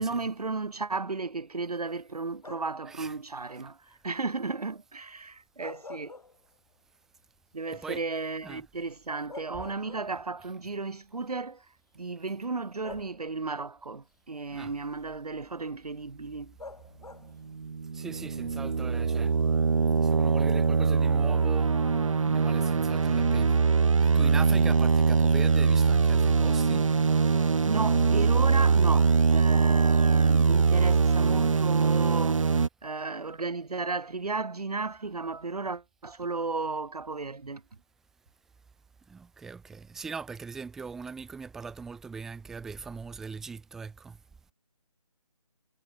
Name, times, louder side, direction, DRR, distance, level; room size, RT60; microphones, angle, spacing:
voice 1, 0.0-6.1 7.5-11.6 12.0-16.5 27.6-32.5 32.8-37.6, right 3 dB, 90° right, 1.7 m, -34 dB
sound 1, 2.4-2.9 5.4-6.8 7.2-7.3 8.8-8.9 9.3-10.4 11.5-11.6 12.8-13.6 16.6-17.5, left 3 dB, 85° left, 4.3 m, -46 dB
voice 2, 7.7-8.0 8.4-8.6 14.5-14.7 17.9-19.4 20.0-21.7 22.2-23.6 24.0-26.9 28.5-28.7 39.1-44.2, right 5 dB, ahead, 1.5 m, -41 dB
sound 2, 17.5-32.7, right 5 dB, 55° right, 0.6 m, -23 dB
figure-of-eight pair, 170°, 19 cm